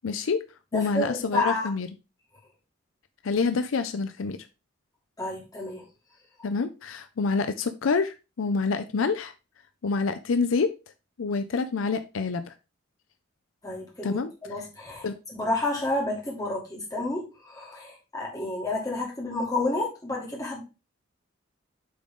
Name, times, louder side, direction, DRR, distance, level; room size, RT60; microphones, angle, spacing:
voice 1, 0.0-0.4 0.7-1.9 3.2-4.4 6.4-9.3 9.8-10.7 11.2-12.5 14.0-14.3 15.0-15.2, left 4 dB, 70° left, 0.5 m, -27 dB
voice 2, 0.7-1.7 5.2-5.8 13.6-20.6, left 2 dB, 15° left, 2.0 m, -30 dB
8.5 x 3.8 x 3.7 m
head